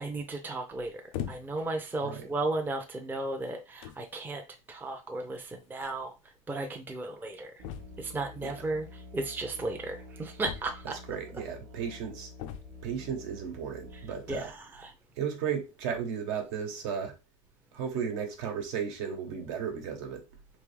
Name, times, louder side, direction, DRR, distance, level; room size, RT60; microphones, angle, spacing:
voice 1, 0.0-4.4 4.7-6.1 6.5-7.5 8.0-8.9 9.1-10.9 14.3-14.9, right 2 dB, 10° right, 0.6 m, -35 dB
sound 1, 1.1-1.7 2.5-2.7 3.5-3.6 3.8-4.1 5.3-5.4 5.7-5.8 6.0-6.1 7.6-8.2 10.4-11.1 12.4-13.0 14.2-14.7, left 10 dB, 75° left, 0.6 m, -40 dB
Musical instrument, 7.6-14.3, left 2 dB, 50° right, 0.8 m, -49 dB
voice 2, 11.1-12.3 12.8-14.5 15.2-17.2 17.7-20.2, right 7 dB, 65° right, 1.2 m, -34 dB
3.5 x 2.8 x 3.4 m
supercardioid pair, 130°, 17 cm